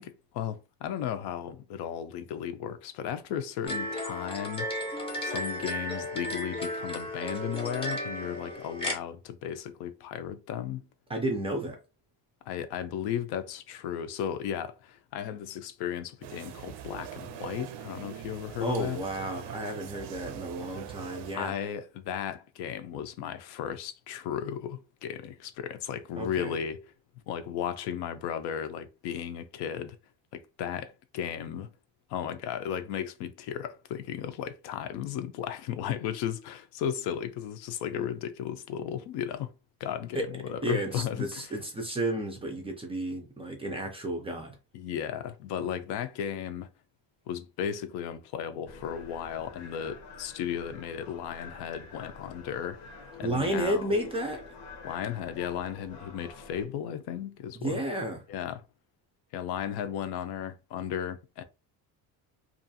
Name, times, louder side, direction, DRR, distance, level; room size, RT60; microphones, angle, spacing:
voice 1, 0.0-4.7 5.2-10.8 12.5-19.0 21.3-26.8 27.3-30.0 30.3-31.7 32.1-39.5 39.8-41.5 44.7-46.7 47.3-52.8 53.2-53.9 54.8-57.8 58.3-58.6 59.3-61.4, left 9 dB, 75° left, 0.5 m, -35 dB
sound 1, 3.6-9.0, left 1 dB, 15° left, 0.7 m, -34 dB
voice 2, 11.1-11.8 18.6-21.5 26.2-26.5 40.1-40.2 40.6-44.6 53.2-54.5 57.5-58.2, right 1 dB, 15° right, 0.3 m, -32 dB
sound 2, 16.2-21.4, right 10 dB, 90° right, 0.5 m, -42 dB
sound 3, 48.7-56.7, left 4 dB, 90° left, 0.9 m, -47 dB
2.5 x 2.3 x 2.6 m
cardioid pair, 150°, 40 cm